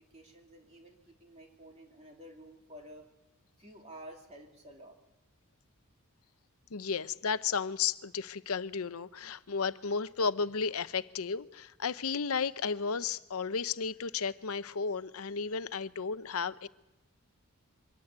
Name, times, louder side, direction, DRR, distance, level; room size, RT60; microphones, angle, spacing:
voice 1, 0.1-3.1 3.6-5.0, equal, 30° right, 2.7 m, -51 dB
voice 2, 6.7-16.7, left 5 dB, 70° left, 0.7 m, -33 dB
24.0 x 15.0 x 9.7 m
head